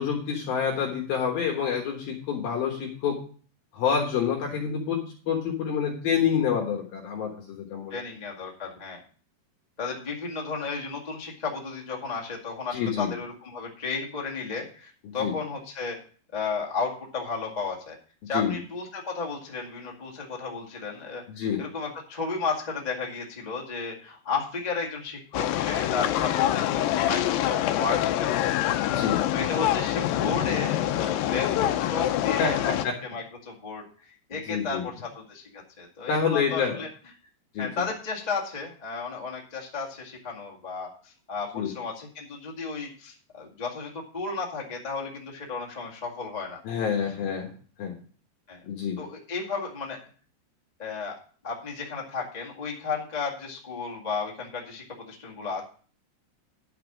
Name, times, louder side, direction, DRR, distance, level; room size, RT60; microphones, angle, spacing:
voice 1, 0.0-3.2 3.7-5.0 5.3-8.0 12.7-13.1 15.0-15.3 18.2-18.6 21.3-21.6 28.9-29.2 32.4-32.9 34.5-34.8 36.1-36.8 37.5-37.8 41.5-41.7 46.6-47.5 47.8-47.9 48.7-49.0, left 7 dB, 65° left, 0 dB, 3.0 m, -27 dB
voice 2, 7.9-9.0 9.8-16.0 16.3-17.9 18.3-21.2 21.6-28.5 29.3-32.7 33.0-33.8 34.3-36.9 37.6-46.6 48.5-48.6 49.0-50.0 50.8-51.2 51.4-55.6, left 4 dB, 35° left, -1 dB, 0.6 m, -33 dB
sound 1, 25.3-32.8, left 12 dB, 90° left, 2.0 m, -25 dB
11.0 x 6.0 x 6.0 m, 0.42 s
omnidirectional pair, 5.0 m